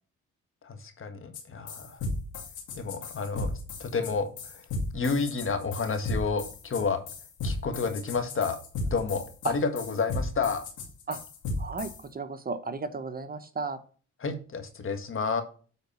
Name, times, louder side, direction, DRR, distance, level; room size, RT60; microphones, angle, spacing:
voice 1, 0.6-2.0 2.7-4.6 4.9-7.0 7.4-8.6 8.8-10.7 14.2-15.4, left 4 dB, 45° left, 8 dB, 1.6 m, -30 dB
sound 1, 1.3-1.4 1.7-12.0, left 2 dB, 80° left, 2.6 m, -35 dB
voice 2, 11.6-13.8, right 4 dB, 30° right, 9 dB, 1.1 m, -34 dB
8.9 x 4.1 x 5.5 m, 0.40 s
cardioid pair, 90°, 30 cm